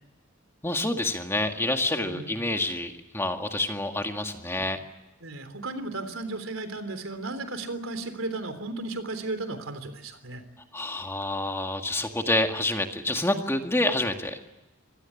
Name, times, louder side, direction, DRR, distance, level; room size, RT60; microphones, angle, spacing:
voice 1, 0.6-4.8 10.7-14.4, left 2 dB, 10° left, 5 dB, 1.9 m, -28 dB
voice 2, 2.0-2.4 5.2-10.4, right 2 dB, 85° right, 9 dB, 3.5 m, -35 dB
25.5 x 18.0 x 9.9 m, 1.0 s
head